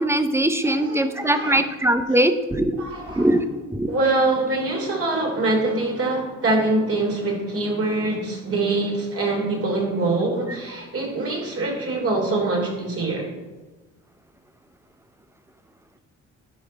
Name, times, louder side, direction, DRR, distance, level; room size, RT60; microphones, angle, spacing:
voice 1, 0.0-2.7 3.2-3.4 3.7-3.9, right 1 dB, 10° right, 10 dB, 0.7 m, -21 dB
voice 2, 0.6-1.6 2.1-2.2 2.8-3.4 3.9-13.3, right 2 dB, 50° right, 0 dB, 3.0 m, -24 dB
11.5 x 4.9 x 5.3 m, 1.2 s
cardioid pair, 90°, 30 cm